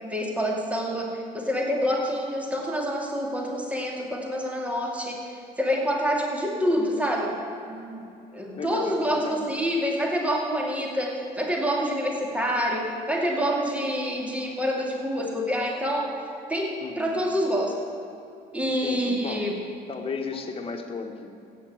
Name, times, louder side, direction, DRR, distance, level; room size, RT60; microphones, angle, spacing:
voice 1, 0.0-7.4 7.7-8.0 8.3-16.2 16.5-17.8 18.5-19.5, equal, 10° right, -1 dB, 2.5 m, -27 dB
voice 2, 8.6-9.4 16.8-17.2 18.8-19.5 19.9-21.3, left 4 dB, 35° left, 3 dB, 1.9 m, -34 dB
16.0 x 9.2 x 8.1 m, 2.7 s
cardioid pair, 110°, 17 cm